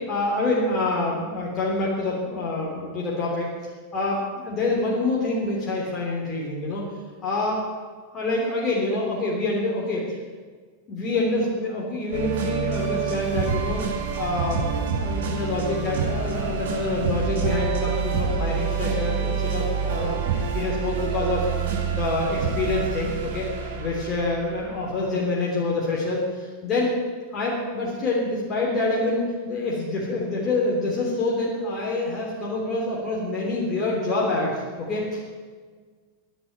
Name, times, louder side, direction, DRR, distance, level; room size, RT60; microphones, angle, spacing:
voice 1, 0.1-3.5 3.9-6.8 7.2-7.6 8.0-10.2 10.9-13.9 14.2-21.5 21.8-23.5 23.8-27.0 27.3-29.2 29.5-35.2, left 2 dB, 30° left, -4 dB, 3.3 m, -26 dB
sound 1, 12.1-25.3, right 6 dB, 60° right, 5.6 m, -27 dB
11.0 x 10.5 x 9.5 m, 1.5 s
figure-of-eight pair, 90°, 0 cm